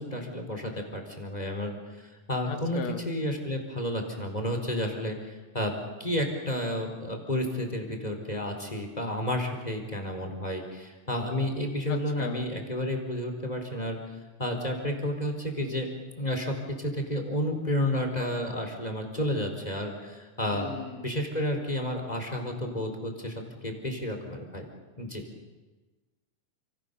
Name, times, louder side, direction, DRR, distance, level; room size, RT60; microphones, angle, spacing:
voice 1, 0.0-1.8 2.3-2.8 3.1-5.7 6.0-14.0 14.4-15.9 16.2-20.7 21.0-23.3 23.6-24.6 25.0-25.2, left 1 dB, 10° left, 3 dB, 4.0 m, -31 dB
voice 2, 2.5-3.0 11.9-12.5 20.5-21.1, left 6 dB, 55° left, 7 dB, 3.3 m, -37 dB
30.0 x 27.0 x 7.0 m, 1.2 s
omnidirectional pair, 3.9 m